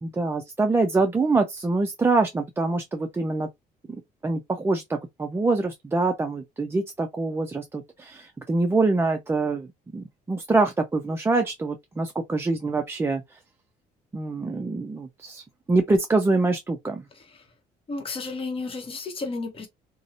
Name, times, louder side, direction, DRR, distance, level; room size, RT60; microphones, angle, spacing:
voice 1, 0.0-3.5 4.2-13.4 14.1-17.1, right 3 dB, 15° right, 0.3 m, -25 dB
voice 2, 17.1-17.4 17.9-19.7, left 3 dB, 35° left, 0.9 m, -33 dB
2.5 x 2.0 x 2.7 m
cardioid pair, 110°, 17 cm